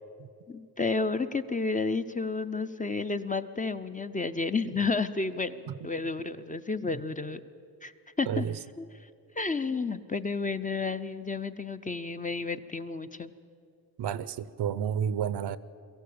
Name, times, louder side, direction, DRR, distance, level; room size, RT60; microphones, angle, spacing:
voice 1, 0.5-7.4 7.8-7.9 8.2-8.4 8.8-8.9 9.4-13.3, left 4 dB, 20° left, 0.5 m, -31 dB
voice 2, 8.3-8.6 14.0-15.6, right 8 dB, 75° right, 0.7 m, -31 dB
22.5 x 15.0 x 8.6 m
wide cardioid pair, 145°, 41 cm